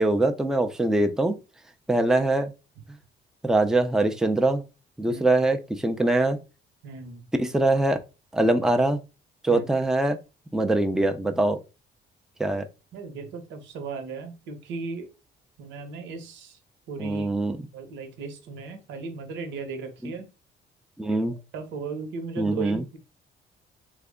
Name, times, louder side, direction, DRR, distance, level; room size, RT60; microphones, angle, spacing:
voice 1, 0.0-1.4 1.9-2.5 3.4-4.6 5.0-6.4 7.4-8.0 8.3-9.0 9.4-10.2 10.5-11.6 12.4-12.7 17.0-17.7 20.0-20.1 21.0-21.4 22.4-22.8, right 2 dB, 5° right, 0.4 m, -23 dB
voice 2, 6.8-7.3 9.5-9.6 12.9-15.1 15.6-16.6 16.9-17.3 17.7-20.3 21.0-21.2 21.5-23.0, right 4 dB, 80° right, 1.0 m, -36 dB
3.3 x 2.1 x 3.6 m
cardioid pair, 95°, 19 cm